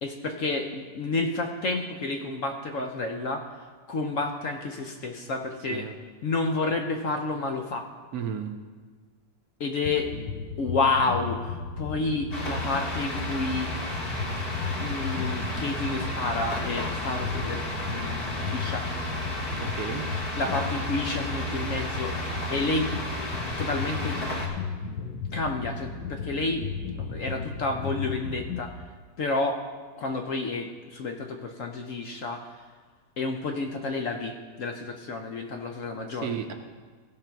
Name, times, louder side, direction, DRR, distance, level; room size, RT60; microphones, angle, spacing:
voice 1, 0.0-5.9 6.2-7.9 9.6-10.1 10.6-13.7 14.8-18.9 20.3-22.9 23.6-24.3 24.8-26.7 27.0-28.8 29.2-29.6 30.0-32.6 33.2-36.3, left 3 dB, 60° left, 3 dB, 0.9 m, -30 dB
voice 2, 8.1-8.5 19.6-20.0 36.2-36.5, right 7 dB, 65° right, 5 dB, 1.1 m, -33 dB
sound 1, 9.8-28.6, left 5 dB, 80° left, 1.5 m, -35 dB
sound 2, 12.3-24.5, equal, 35° left, 1.4 m, -33 dB
15.5 x 5.8 x 4.5 m, 1.5 s
omnidirectional pair, 2.0 m